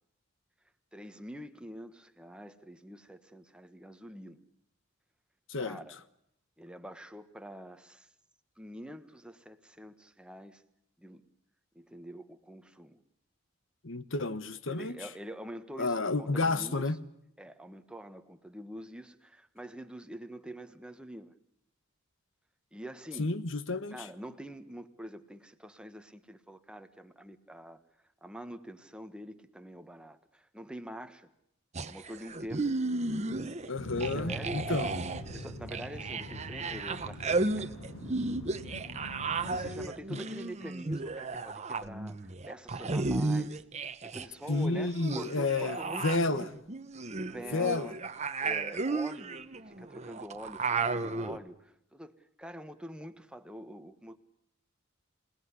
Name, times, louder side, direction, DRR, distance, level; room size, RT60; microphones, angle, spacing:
voice 1, 0.9-4.4 5.6-6.0 6.6-8.1 8.6-10.6 11.0-11.2 11.7-13.0 14.2-14.3 14.7-16.8 17.4-21.4 22.7-23.4 23.9-27.8 28.2-31.3 31.9-32.7 33.9-34.9 35.3-37.7 39.4-46.5 47.2-48.0 48.4-54.2, equal, 5° right, 1.4 m, -45 dB
voice 2, 13.8-15.0 15.8-17.0 23.2-24.1 33.7-34.9 40.1-40.2 44.5-46.5 47.5-47.9, left 3 dB, 65° left, 1.3 m, -31 dB
sound 1, 31.7-33.7 34.0-44.3 44.5-51.4, right 3 dB, 35° right, 1.1 m, -34 dB
sound 2, 33.7-39.9, equal, 90° left, 7.8 m, -43 dB
27.5 x 19.0 x 9.8 m
head